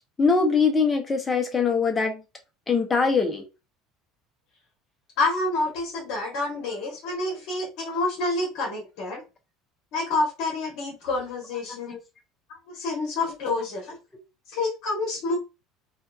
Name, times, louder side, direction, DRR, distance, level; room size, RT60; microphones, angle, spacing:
voice 1, 0.2-2.2 2.7-3.4 11.9-12.0, left 5 dB, 15° left, 0.5 m, -22 dB
voice 2, 5.2-9.2 9.9-12.0 12.7-14.0 14.5-15.4, left 2 dB, 60° left, 0.9 m, -28 dB
2.7 x 2.3 x 2.2 m
cardioid pair, 150°, 0 cm